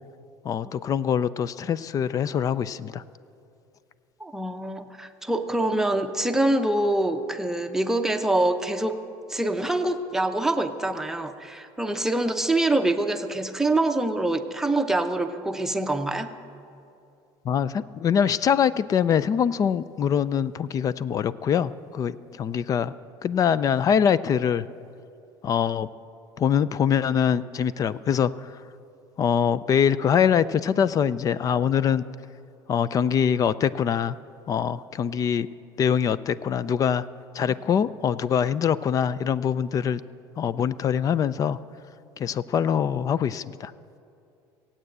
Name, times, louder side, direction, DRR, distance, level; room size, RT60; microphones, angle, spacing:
voice 1, 0.4-3.0 17.4-22.9 23.2-24.7 25.4-25.9 26.4-28.6 29.2-32.0 32.7-34.1 34.5-35.5 35.8-37.1 37.3-40.0 40.4-41.6 42.2-43.7, left 8 dB, 35° left, 18 dB, 0.4 m, -23 dB
voice 2, 4.2-9.0 9.3-16.3, right 2 dB, 5° right, 6 dB, 0.8 m, -25 dB
16.5 x 8.7 x 8.0 m, 2.5 s
cardioid pair, 125°, 10 cm